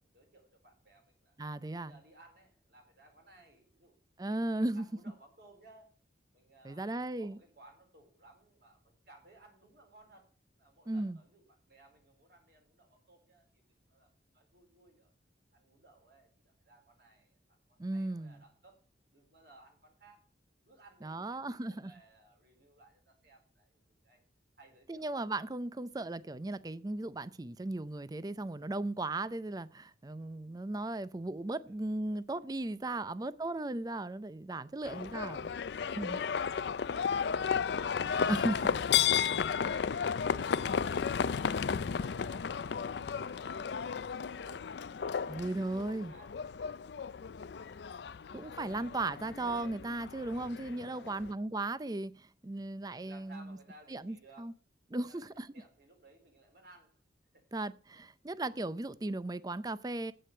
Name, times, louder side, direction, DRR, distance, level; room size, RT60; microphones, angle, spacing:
voice 1, 0.0-1.4 1.8-4.0 4.3-6.0 6.3-10.3 10.6-15.1 15.5-18.8 19.1-20.3 20.6-24.2 24.6-25.2 31.7-31.8 32.9-33.3 34.5-35.1 35.9-38.5 42.0-45.7 46.1-48.2 50.8-51.3 53.0-54.5 54.9-55.3 55.5-57.0 57.3-57.4 57.9-58.1, right 2 dB, 60° right, 4.4 m, -61 dB
voice 2, 1.4-2.0 4.2-4.8 6.6-7.4 10.9-11.2 17.8-18.4 21.0-21.9 24.9-35.5 36.0-36.2 38.3-38.8 45.2-46.1 48.3-53.6 53.9-54.5 54.9-55.5 57.5-60.1, right 2 dB, 20° right, 0.5 m, -36 dB
Livestock farm animals working animals, 34.8-51.3, left 7 dB, 65° left, 0.4 m, -33 dB
8.5 x 7.7 x 7.8 m
head